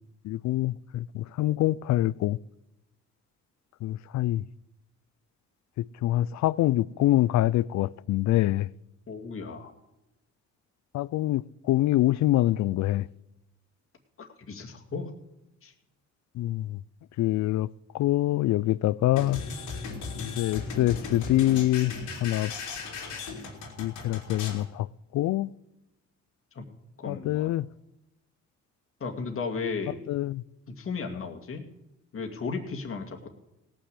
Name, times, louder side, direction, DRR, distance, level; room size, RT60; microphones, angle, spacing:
voice 1, 0.2-2.4 3.8-4.5 5.8-8.7 10.9-13.1 16.3-16.8 17.2-19.4 20.2-21.9 22.2-22.5 23.8-25.5 27.1-27.7 30.1-30.4, left 15 dB, 65° left, 0.4 m, -25 dB
voice 2, 9.1-9.7 14.2-15.1 15.6-15.7 26.5-26.7 27.0-27.5 29.0-30.0 30.7-31.6 32.1-33.3, left 4 dB, 45° left, 2.2 m, -35 dB
sound 1, 19.2-24.6, left 4 dB, 90° left, 3.2 m, -37 dB
17.0 x 6.2 x 8.2 m
cardioid pair, 90°, 30 cm